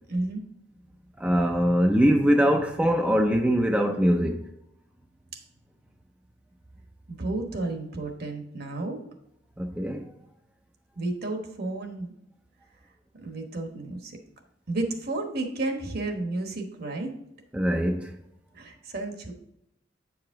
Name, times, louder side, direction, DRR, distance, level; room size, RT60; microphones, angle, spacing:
voice 1, 0.1-0.4 5.3-5.4 7.1-9.0 11.0-12.1 13.2-14.2 14.7-17.1 18.5-19.3, right 2 dB, 50° right, 1.1 m, -32 dB
voice 2, 1.2-4.5 9.6-10.1 17.5-18.1, equal, 5° right, 0.4 m, -22 dB
8.6 x 4.9 x 3.6 m
head